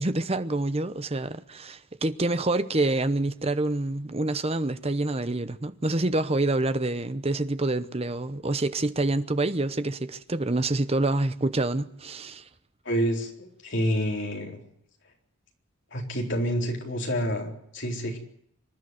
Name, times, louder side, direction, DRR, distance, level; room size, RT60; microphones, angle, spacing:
voice 1, 0.0-12.4, right 2 dB, 30° right, 0.8 m, -27 dB
voice 2, 12.8-14.6 15.9-18.2, equal, 55° left, 4.0 m, -28 dB
25.5 x 11.5 x 9.3 m
head